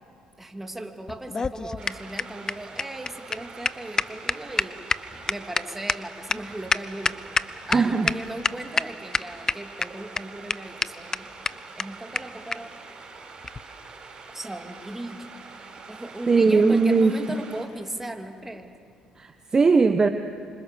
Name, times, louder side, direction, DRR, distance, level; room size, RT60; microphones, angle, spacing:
voice 1, 0.4-4.8 5.3-7.2 7.7-11.3 11.8-12.7 14.3-15.3 15.9-18.7, right 1 dB, 10° right, 4 dB, 2.8 m, -37 dB
sound 1, 1.1-7.8 8.1-8.2 8.4-8.8 9.1-9.8 10.2-10.3 10.5-10.6 10.8-10.9 11.1-11.2 11.4-11.5 11.8-11.9 12.1-12.2 12.5-12.6 13.4-13.6, left 4 dB, 30° left, 0.7 m, -25 dB
sound 2, 1.8-17.7, right 4 dB, 50° right, 7.5 m, -45 dB
voice 2, 7.7-8.1 16.3-17.4 19.2-20.1, right 4 dB, 30° right, 8 dB, 1.1 m, -19 dB
26.5 x 26.5 x 6.8 m, 2.5 s
supercardioid pair, 70°, 2 cm